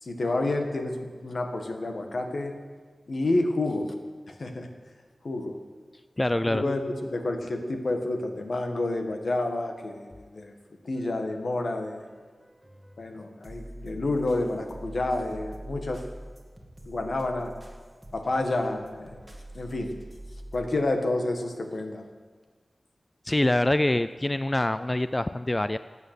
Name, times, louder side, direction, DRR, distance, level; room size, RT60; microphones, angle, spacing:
voice 1, 0.0-2.5 3.1-3.9 4.3-4.7 5.2-5.6 6.5-10.5 10.8-12.0 13.0-16.0 16.9-17.5 18.1-19.2 19.5-19.9 20.5-22.0, left 2 dB, 70° left, 4 dB, 1.7 m, -29 dB
voice 2, 6.2-6.6 23.2-25.8, left 1 dB, 20° left, 12 dB, 0.4 m, -25 dB
sound 1, 10.9-11.5 11.8-20.7, right 1 dB, 5° right, 2.3 m, -45 dB
15.5 x 9.3 x 8.3 m, 1.5 s
wide cardioid pair, 85°, 0 cm